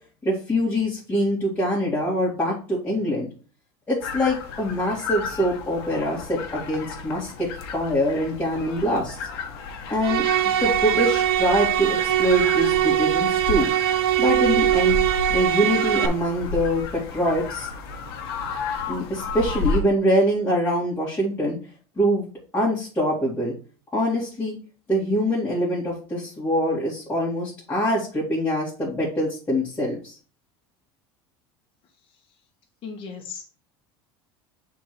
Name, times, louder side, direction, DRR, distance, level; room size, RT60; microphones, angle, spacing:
voice 1, 0.2-3.3 3.9-7.5 7.7-9.2 9.9-10.2 10.6-13.7 14.2-15.0 15.3-17.7 18.9-21.6 22.0-22.3 22.5-23.5 23.9-24.5 24.9-30.1, equal, 15° left, -8 dB, 2.6 m, -24 dB
sound 1, 4.0-19.8, left 4 dB, 80° left, 1.4 m, -33 dB
sound 2, 10.0-16.1, right 12 dB, 85° right, 0.8 m, -21 dB
voice 2, 32.8-33.4, left 6 dB, 45° left, 0 dB, 1.5 m, -36 dB
6.8 x 3.8 x 4.7 m, 0.38 s
supercardioid pair, 105°, 13 cm